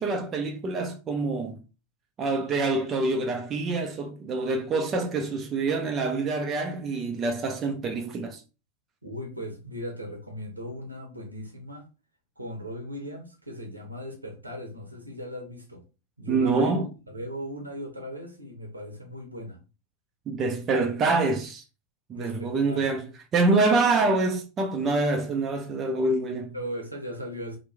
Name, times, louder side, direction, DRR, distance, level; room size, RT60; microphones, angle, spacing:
voice 1, 0.0-1.6 2.2-8.4 16.3-16.9 20.3-21.6 22.1-23.1 23.3-26.5, right 3 dB, 25° right, 0.5 m, -26 dB
voice 2, 9.0-11.9 12.4-15.8 16.2-19.6 22.1-22.9 26.5-27.6, equal, 85° right, 0.8 m, -38 dB
2.9 x 2.1 x 3.3 m
figure-of-eight pair, 90°, 0 cm